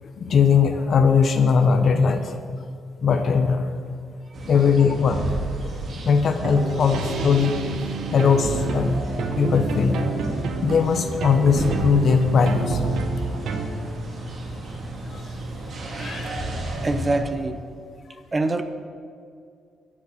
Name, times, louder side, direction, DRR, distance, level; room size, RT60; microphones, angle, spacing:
voice 1, 0.0-2.4 3.0-3.7 4.5-5.2 5.6-5.8 6.0-7.5 8.1-10.0 10.6-12.8 15.1-15.2 15.9-16.3, left 6 dB, 55° left, 7 dB, 0.8 m, -20 dB
sound 1, 4.3-17.2, right 1 dB, 55° right, 2.3 m, -33 dB
sound 2, 6.4-13.7, right 3 dB, 70° right, 1.2 m, -28 dB
voice 2, 16.8-17.6 18.3-18.6, right 2 dB, 25° right, 9 dB, 0.8 m, -24 dB
12.5 x 7.2 x 7.1 m, 2.3 s
cardioid pair, 90°, 0 cm